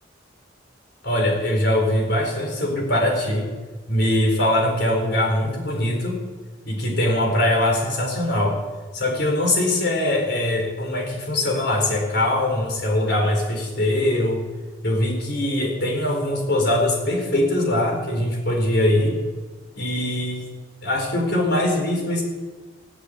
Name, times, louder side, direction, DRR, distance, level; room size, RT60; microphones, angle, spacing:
voice 1, 1.0-3.5 3.9-6.2 6.6-8.6 8.9-14.4 14.8-19.2 19.8-20.5 20.8-22.2, left 1 dB, 60° left, 1 dB, 4.5 m, -22 dB
16.5 x 8.6 x 8.9 m, 1.3 s
head